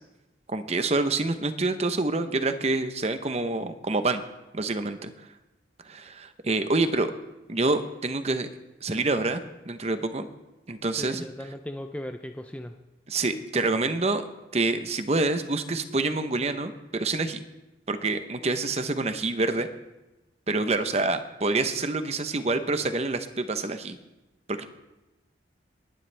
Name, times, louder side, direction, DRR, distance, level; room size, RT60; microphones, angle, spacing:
voice 1, 0.5-4.2 4.5-5.1 5.8-7.1 7.5-8.5 8.8-10.3 10.7-11.2 13.1-14.2 14.5-17.4 17.9-19.7 20.5-24.0 24.5-24.7, right 3 dB, 35° right, 9 dB, 0.9 m, -27 dB
voice 2, 11.0-12.8, left 1 dB, 5° left, 6 dB, 0.5 m, -37 dB
28.5 x 10.5 x 3.4 m, 1.1 s
head